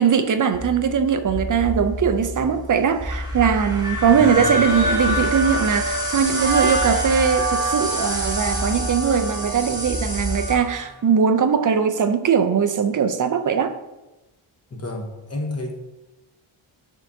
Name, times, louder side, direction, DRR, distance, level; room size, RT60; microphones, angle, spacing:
voice 1, 0.0-13.8, right 6 dB, 40° right, 0.4 m, -20 dB
sound 1, 0.5-10.6, equal, 10° right, 1.0 m, -29 dB
sound 2, 3.8-10.9, right 1 dB, 90° right, 1.3 m, -26 dB
voice 2, 4.1-4.6 14.7-15.7, left 2 dB, 30° left, 0.9 m, -30 dB
11.0 x 3.6 x 2.6 m
wide cardioid pair, 160°, 50 cm